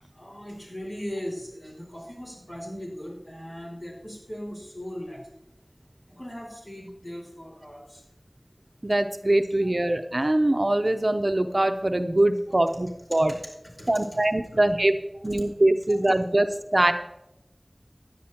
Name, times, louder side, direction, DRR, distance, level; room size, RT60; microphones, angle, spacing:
voice 1, 0.1-5.2 6.2-8.0 9.6-9.7 13.3-13.4 13.8-13.9 15.9-16.0, equal, 55° left, -4 dB, 4.9 m, -38 dB
voice 2, 8.8-13.3 13.9-14.9 15.2-16.5 16.7-16.9, right 1 dB, 55° right, 8 dB, 0.6 m, -22 dB
16.0 x 10.5 x 2.9 m, 0.90 s
wide cardioid pair, 40°, 0 cm